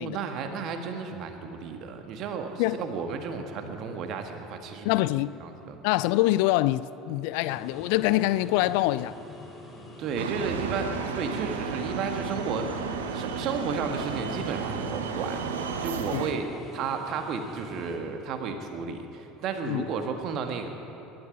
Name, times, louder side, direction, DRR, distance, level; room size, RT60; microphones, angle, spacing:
voice 1, 0.0-4.9 5.4-5.7 10.0-15.4 15.8-20.7, right 5 dB, 50° right, 1.7 m, -33 dB
voice 2, 4.8-5.4 5.8-9.1 16.1-16.3 19.7-19.8, left 17 dB, 65° left, 0.4 m, -25 dB
sound 1, 7.5-18.0, left 1 dB, 10° left, 4.5 m, -45 dB
Wind instrument woodwind instrument, 10.1-16.4, right 7 dB, 30° right, 1.9 m, -43 dB
sound 2, 10.2-16.3, right 6 dB, 75° right, 1.0 m, -33 dB
20.0 x 12.5 x 5.3 m
figure-of-eight pair, 70°, 0 cm